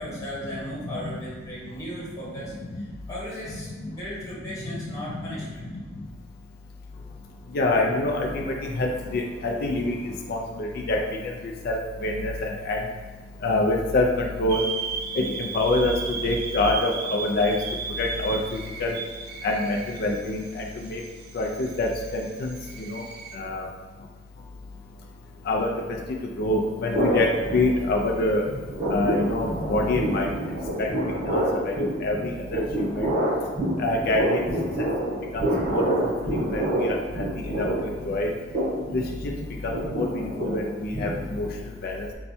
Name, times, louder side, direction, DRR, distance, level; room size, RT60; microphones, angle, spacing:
voice 1, 0.0-5.6, equal, 20° left, -8 dB, 1.4 m, -37 dB
voice 2, 7.5-8.5 8.8-10.0 10.3-11.0 11.7-12.8 13.4-14.6 15.2-15.9 16.2-17.5 18.0-18.4 18.8-18.9 19.4-21.0 21.3-22.5 22.8-23.0 23.4-23.7 25.5-25.7 26.4-28.4 28.9-30.3 30.8-30.9 31.3-31.4 31.8-33.1 33.8-34.4 35.3-35.4 35.7-35.9 36.5-37.0 37.6-38.3 38.9-39.0 39.6-41.5 41.8-41.9, left 2 dB, 55° left, 0 dB, 0.4 m, -25 dB
sound 1, 14.5-23.4, right 5 dB, 60° right, 0.4 m, -36 dB
sound 2, 26.9-28.2 28.4-41.6, right 1 dB, 35° right, 1.2 m, -27 dB
4.3 x 2.2 x 4.1 m, 1.4 s
head